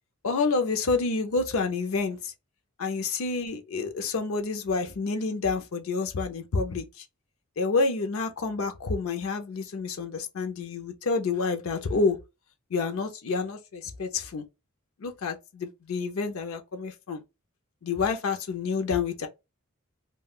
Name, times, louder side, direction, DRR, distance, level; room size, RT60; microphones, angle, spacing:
voice 1, 0.2-2.3 2.8-7.0 7.6-12.2 12.7-14.4 15.0-17.2 17.8-19.3, left 4 dB, 70° left, 0.5 m, -28 dB
2.3 x 2.2 x 3.5 m
head